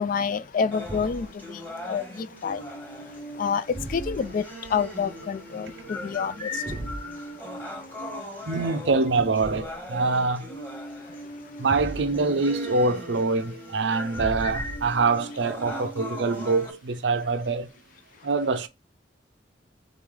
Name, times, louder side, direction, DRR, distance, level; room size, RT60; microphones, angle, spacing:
voice 1, 0.0-8.5 11.0-11.7, left 6 dB, 45° left, 0.3 m, -30 dB
sound 1, 0.7-16.7, left 1 dB, 10° left, 1.2 m, -38 dB
Thump thud, 0.8-1.4 3.7-4.4 6.7-7.1 9.4-9.9 11.7-12.3 14.1-15.1, right 1 dB, 30° right, 0.5 m, -36 dB
voice 2, 8.5-10.5 11.6-17.7 18.2-18.7, right 3 dB, 80° right, 0.6 m, -25 dB
3.8 x 3.2 x 3.6 m
head